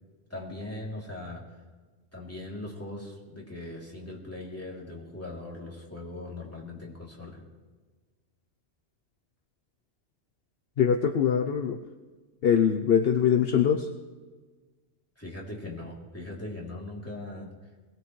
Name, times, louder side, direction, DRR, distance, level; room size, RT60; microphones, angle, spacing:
voice 1, 0.3-1.4 2.1-7.4 15.2-17.5, left 2 dB, 10° left, -3 dB, 3.0 m, -40 dB
voice 2, 10.8-11.8 12.4-13.9, left 8 dB, 60° left, 7 dB, 0.9 m, -23 dB
21.5 x 18.0 x 3.2 m, 1.3 s
omnidirectional pair, 1.2 m